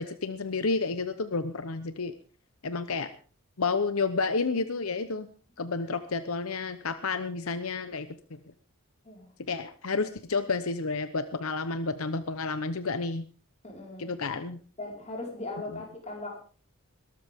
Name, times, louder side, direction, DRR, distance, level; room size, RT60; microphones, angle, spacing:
voice 1, 0.0-2.1 2.6-3.1 3.6-5.3 5.6-8.1 9.5-13.3 14.0-14.6, left 4 dB, 80° left, 11 dB, 0.9 m, -30 dB
voice 2, 13.6-14.1 14.8-16.4, left 2 dB, 30° left, -1 dB, 4.9 m, -39 dB
21.0 x 13.0 x 3.6 m, 0.39 s
head